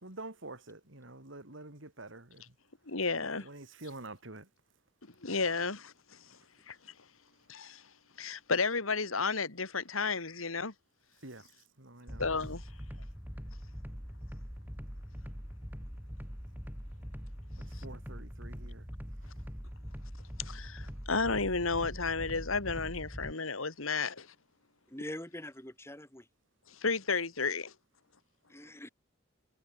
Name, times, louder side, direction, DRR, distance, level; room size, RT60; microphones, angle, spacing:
voice 1, 0.0-2.5 3.4-4.5 11.2-11.5 11.8-12.3 17.7-18.9, right 2 dB, 60° right, 3.2 m, -47 dB
voice 2, 2.9-3.5 5.2-5.9 6.7-6.8 7.5-7.8 8.2-10.7 12.2-12.6 20.4-24.3 26.8-27.7, left 4 dB, 85° left, 2.4 m, -32 dB
sound 1, 12.1-23.3, equal, 10° right, 5.3 m, -43 dB
voice 3, 24.9-26.3 28.5-28.9, left 1 dB, 10° left, 4.3 m, -44 dB
head